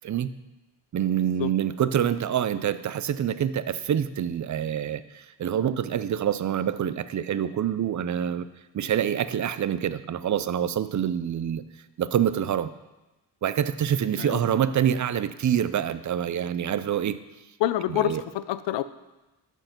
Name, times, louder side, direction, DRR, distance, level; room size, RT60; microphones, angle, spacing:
voice 1, 0.9-8.5 8.7-11.6 12.0-12.7 13.4-17.2 17.9-18.2, right 9 dB, 45° right, 14 dB, 0.5 m, -26 dB
voice 2, 17.6-18.8, left 13 dB, 80° left, 14 dB, 0.6 m, -27 dB
13.0 x 4.6 x 6.0 m, 1.1 s
cardioid pair, 105°, 42 cm